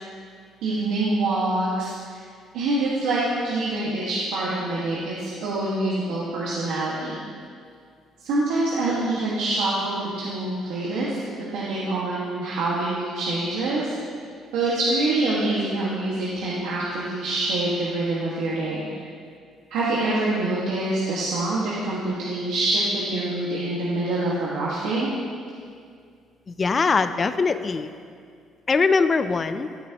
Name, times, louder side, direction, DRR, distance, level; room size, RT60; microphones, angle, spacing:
voice 1, 0.6-2.2 2.5-7.2 8.2-11.2 11.5-14.0 14.5-19.0 19.7-25.1, right 2 dB, 90° right, -7 dB, 1.6 m, -25 dB
voice 2, 26.5-27.9 28.7-29.7, left 4 dB, 25° left, 11 dB, 0.4 m, -22 dB
13.0 x 9.5 x 2.9 m, 2.2 s
cardioid pair, 135°, 0 cm